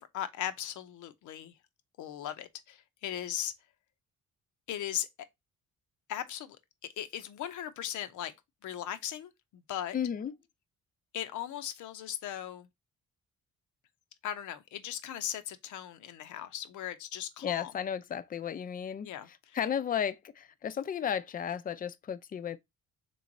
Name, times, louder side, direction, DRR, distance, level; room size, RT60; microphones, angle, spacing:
voice 1, 0.0-1.5 2.0-3.5 4.7-5.1 6.1-6.6 7.0-8.3 8.6-9.9 11.1-12.7 14.2-17.7 19.0-19.6, left 11 dB, 80° left, 0.7 m, -38 dB
voice 2, 9.9-10.3 17.4-22.6, left 8 dB, 30° left, 0.4 m, -34 dB
3.4 x 3.1 x 3.9 m
cardioid pair, 90°, 30 cm